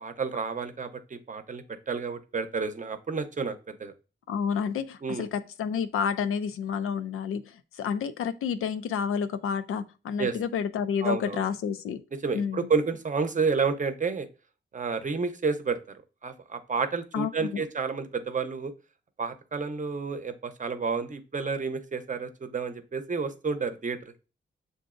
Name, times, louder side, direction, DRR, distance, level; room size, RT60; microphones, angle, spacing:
voice 1, 0.0-3.9 5.0-5.3 10.2-10.3 11.0-11.5 12.1-14.3 14.7-15.8 16.2-18.7 19.2-24.2, right 5 dB, 35° right, 0.7 m, -30 dB
voice 2, 4.3-12.0 12.3-12.7 17.1-17.7, left 7 dB, 85° left, 0.5 m, -30 dB
6.6 x 2.6 x 2.5 m
cardioid pair, 60°, 21 cm